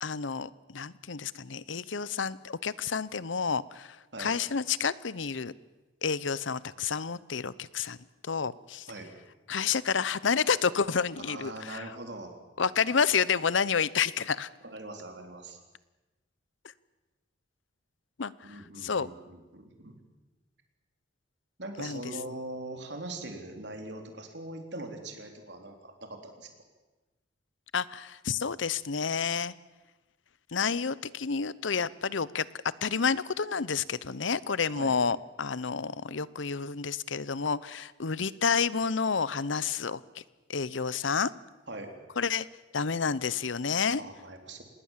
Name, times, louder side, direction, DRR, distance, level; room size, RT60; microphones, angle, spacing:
voice 1, 0.0-5.5 6.0-8.0 8.2-8.9 9.5-11.8 12.6-14.5 18.2-19.1 21.8-22.0 27.7-29.5 30.5-32.5 32.8-40.2 40.5-41.3 42.2-42.5 42.7-44.0, left 6 dB, 80° left, 19 dB, 0.8 m, -30 dB
voice 2, 11.1-12.3 14.6-15.6 18.4-20.0 21.6-26.5 34.7-35.0 41.7-41.9 44.0-44.6, right 2 dB, 60° right, 4 dB, 3.7 m, -41 dB
27.0 x 20.0 x 7.5 m, 1.1 s
head